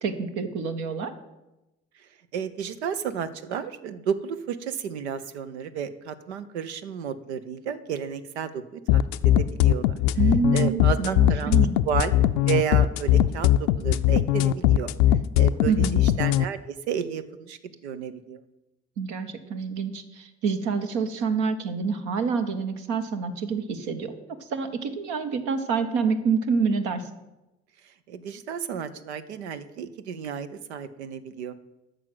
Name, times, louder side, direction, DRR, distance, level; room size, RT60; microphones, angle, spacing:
voice 1, 0.0-1.1 10.2-11.8 15.7-16.0 19.0-27.0, right 5 dB, 65° right, 7 dB, 1.1 m, -27 dB
voice 2, 2.3-9.9 10.5-11.6 11.9-14.9 15.4-18.4 28.1-31.5, right 8 dB, 80° right, 12 dB, 0.7 m, -32 dB
sound 1, 8.9-16.5, left 12 dB, 70° left, 0.5 m, -20 dB
9.1 x 6.4 x 7.8 m, 0.97 s
figure-of-eight pair, 50°, 33 cm